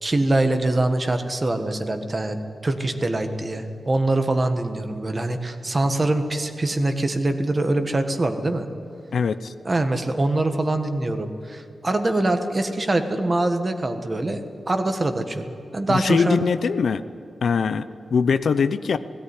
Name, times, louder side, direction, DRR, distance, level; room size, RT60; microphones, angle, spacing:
voice 1, 0.0-8.7 9.6-14.4 14.7-16.4, right 2 dB, 25° right, 7 dB, 1.5 m, -24 dB
voice 2, 9.1-9.5 15.9-17.0 17.4-17.8 18.1-19.0, left 6 dB, 70° left, 12 dB, 0.7 m, -21 dB
17.0 x 17.0 x 9.7 m, 2.6 s
wide cardioid pair, 125°, 0 cm